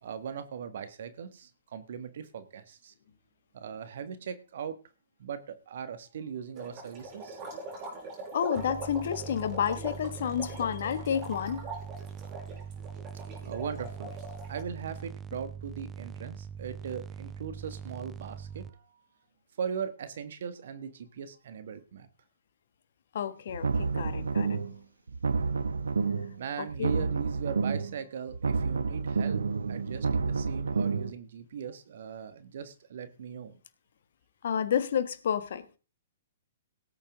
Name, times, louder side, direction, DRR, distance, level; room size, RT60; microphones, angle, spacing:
voice 1, 0.0-2.9 3.5-4.7 5.2-7.4 13.4-14.2 14.5-19.0 19.6-22.1 26.3-29.4 29.7-33.6, right 7 dB, 55° right, 1.6 m, -39 dB
sound 1, 6.6-14.6, right 2 dB, 35° right, 6.1 m, -42 dB
voice 2, 8.3-11.7 23.1-24.6 26.6-27.0 34.4-35.8, left 8 dB, 55° left, 1.4 m, -30 dB
sound 2, 8.6-18.7, right 7 dB, 20° right, 0.9 m, -42 dB
sound 3, 23.5-24.8 25.1-26.4 26.7-28.0 28.3-31.1, right 4 dB, 75° right, 0.9 m, -29 dB
18.0 x 8.8 x 3.7 m
figure-of-eight pair, 115°, 0 cm